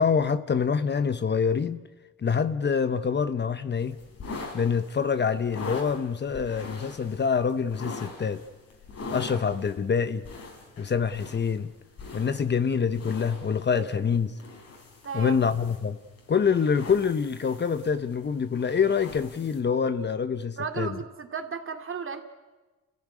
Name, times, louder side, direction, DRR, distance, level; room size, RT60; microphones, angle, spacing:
voice 1, 0.0-1.8 2.2-4.0 4.5-8.4 9.1-10.2 10.8-11.7 12.1-14.3 15.1-16.0 16.3-21.0, left 6 dB, 35° left, 1.0 m, -26 dB
sound 1, 3.8-19.6, left 3 dB, 55° left, 5.2 m, -43 dB
voice 2, 15.0-15.4 20.6-22.2, right 6 dB, 45° right, 2.6 m, -34 dB
29.0 x 15.0 x 9.7 m
cardioid pair, 90°, 30 cm